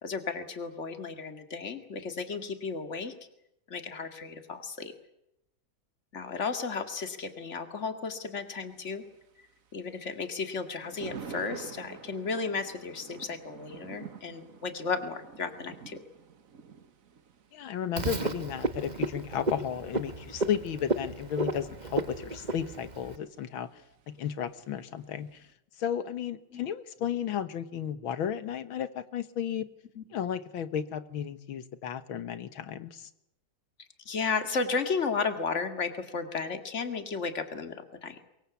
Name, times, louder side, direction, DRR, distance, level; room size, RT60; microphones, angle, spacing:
voice 1, 0.0-3.1 3.7-4.9 6.1-9.0 9.7-16.0 26.5-26.6 30.0-30.1 34.1-38.2, left 4 dB, 35° left, 8 dB, 2.4 m, -34 dB
Thunder, 8.4-25.5, right 6 dB, 45° right, 1.5 m, -50 dB
voice 2, 17.5-23.7 24.2-25.4 25.8-29.7 30.1-33.1, left 9 dB, 85° left, 13 dB, 2.1 m, -34 dB
Frog, 18.0-23.2, right 2 dB, 25° right, 1.2 m, -33 dB
23.5 x 22.5 x 8.3 m, 0.81 s
omnidirectional pair, 2.1 m